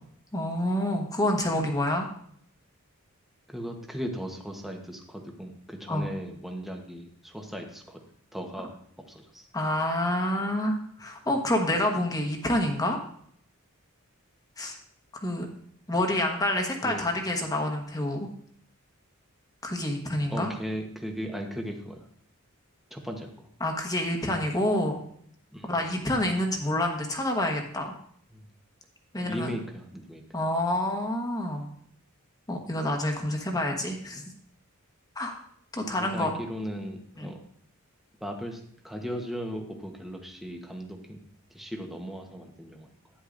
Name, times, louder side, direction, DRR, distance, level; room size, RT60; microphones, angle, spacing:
voice 1, 0.3-2.1 5.9-6.1 9.5-13.0 14.6-14.8 15.2-15.5 15.9-18.3 19.6-20.5 23.6-25.0 25.6-28.0 29.1-29.5 30.3-31.7 32.5-34.2 35.1-35.4 35.7-36.3 37.2-37.3, left 1 dB, 15° left, 1 dB, 1.3 m, -28 dB
voice 2, 3.5-8.0 8.3-8.7 9.1-9.5 16.8-17.1 20.3-22.1 22.9-23.5 25.5-26.0 28.3-28.5 29.1-30.2 35.9-37.4 38.2-42.9, equal, ahead, 2 dB, 1.0 m, -37 dB
11.5 x 9.6 x 2.6 m, 0.65 s
head